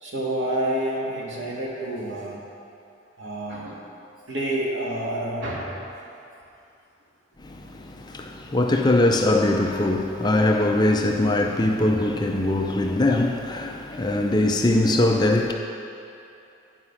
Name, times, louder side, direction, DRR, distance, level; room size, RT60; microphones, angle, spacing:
voice 1, 0.0-2.4 3.2-3.8 4.3-5.7, right 1 dB, 85° right, -4 dB, 1.8 m, -28 dB
voice 2, 7.4-15.5, left 1 dB, 20° left, 2 dB, 0.4 m, -22 dB
10.0 x 4.8 x 5.7 m, 2.7 s
head